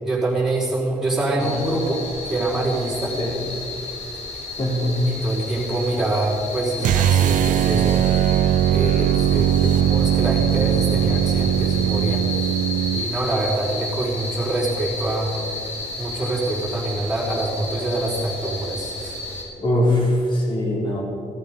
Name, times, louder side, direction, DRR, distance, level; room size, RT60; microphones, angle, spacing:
voice 1, 0.0-2.0 2.3-3.2 5.0-8.1 8.7-12.5 12.9-15.3 15.9-19.2, right 2 dB, 5° right, -7 dB, 4.5 m, -25 dB
sound 1, 1.4-19.4, left 2 dB, 55° left, 3.9 m, -32 dB
voice 2, 4.6-5.0 19.6-21.0, left 1 dB, 40° left, -3 dB, 4.3 m, -21 dB
sound 2, 6.8-13.1, right 11 dB, 85° right, 0.4 m, -19 dB
16.0 x 14.0 x 5.4 m, 2.5 s
wide cardioid pair, 160°, 13 cm